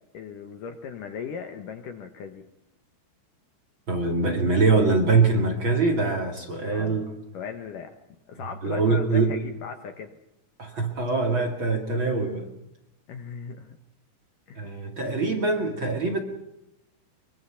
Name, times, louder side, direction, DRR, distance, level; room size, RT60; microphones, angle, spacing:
voice 1, 0.1-2.5 6.7-7.1 7.3-7.9 8.3-10.2 13.1-13.8 14.5-14.7, left 6 dB, 65° left, 7 dB, 2.3 m, -38 dB
voice 2, 3.9-7.1 8.6-9.3 10.6-12.4 14.6-16.2, right 3 dB, 35° right, 2 dB, 2.4 m, -23 dB
24.5 x 23.5 x 5.8 m, 0.83 s
omnidirectional pair, 5.0 m